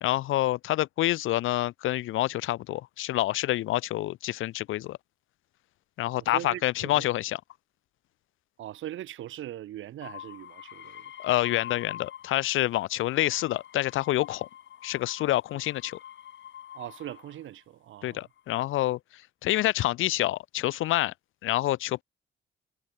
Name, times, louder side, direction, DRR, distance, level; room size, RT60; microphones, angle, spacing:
voice 1, 0.0-5.0 6.0-7.4 11.2-14.5 14.8-16.0 18.0-19.0 19.4-21.1 21.4-22.0, left 15 dB, 85° left, 2.6 m, -27 dB
voice 2, 6.2-7.0 8.6-11.1 16.7-18.3, right 13 dB, 80° right, 7.1 m, -40 dB
sound 1, 10.0-12.6 12.9-17.5 18.2-18.8, left 10 dB, 65° left, 5.6 m, -46 dB
cardioid pair, 90°, 20 cm